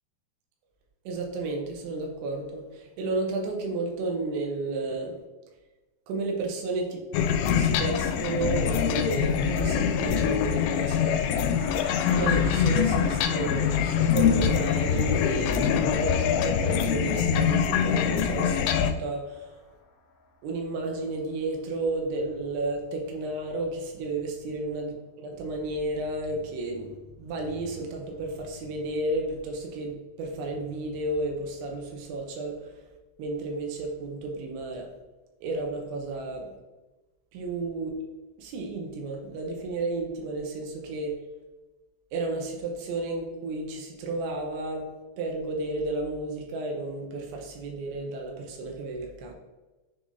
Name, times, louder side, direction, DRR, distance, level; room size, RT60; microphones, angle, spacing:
voice 1, 1.1-5.2 6.1-7.0 7.5-11.5 12.1-19.6 20.4-26.9 27.2-32.8 33.2-34.9 35.4-36.5 37.3-37.9 38.4-41.2 42.1-44.9 45.2-49.3, right 2 dB, 80° right, 1 dB, 3.2 m, -32 dB
sound 1, 7.1-18.9, left 8 dB, 90° left, 3.0 m, -24 dB
Gong, 11.4-20.9, left 3 dB, 65° left, 2.1 m, -46 dB
9.2 x 3.9 x 2.6 m, 1.1 s
omnidirectional pair, 5.3 m